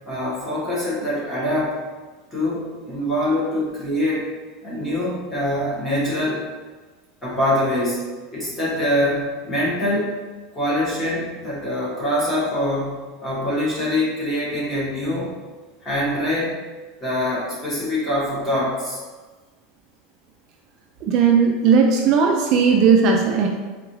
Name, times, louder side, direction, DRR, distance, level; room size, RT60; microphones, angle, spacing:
voice 1, 0.0-1.8 2.3-4.3 4.6-6.4 7.2-8.1 8.3-10.1 10.5-15.3 15.8-16.6 17.0-19.0, left 1 dB, 15° left, -8 dB, 1.3 m, -24 dB
voice 2, 21.0-23.5, right 6 dB, 40° right, 1 dB, 0.3 m, -16 dB
3.9 x 2.4 x 3.1 m, 1.3 s
supercardioid pair, 155°, 0 cm